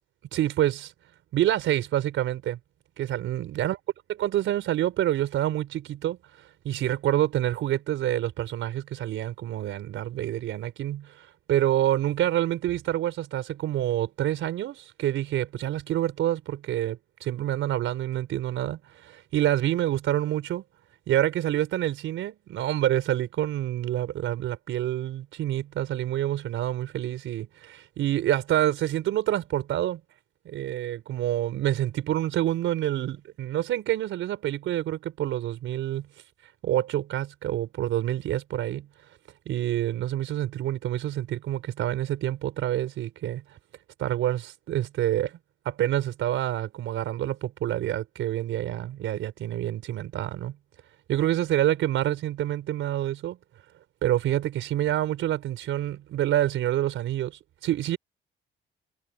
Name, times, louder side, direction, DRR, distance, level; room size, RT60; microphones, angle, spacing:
voice 1, 0.3-0.9 1.3-2.6 3.0-3.8 4.1-6.2 6.6-20.6 21.1-30.0 30.4-36.1 36.6-38.9 39.4-43.4 44.0-45.4 45.6-50.5 51.1-53.4 54.0-58.0, right 12 dB, 80° right, 5.1 m, -27 dB
cardioid pair, 90°, 20 cm